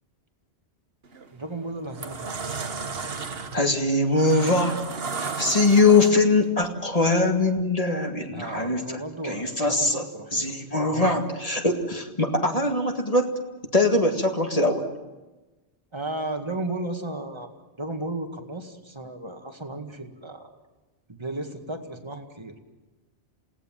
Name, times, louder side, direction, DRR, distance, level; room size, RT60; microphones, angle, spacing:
sound 1, 1.1-1.3 1.8-6.4, right 4 dB, 60° right, 1.5 m, -33 dB
voice 1, 1.3-2.4 8.3-10.5 10.9-11.2 11.5-11.6 15.9-20.5 21.1-22.6, right 2 dB, 25° right, 5 dB, 2.0 m, -34 dB
voice 2, 3.5-4.8 5.2-10.0 10.3-13.3 13.7-14.9, left 2 dB, 35° left, 4 dB, 2.0 m, -22 dB
28.5 x 18.0 x 7.5 m, 1.1 s
omnidirectional pair, 1.1 m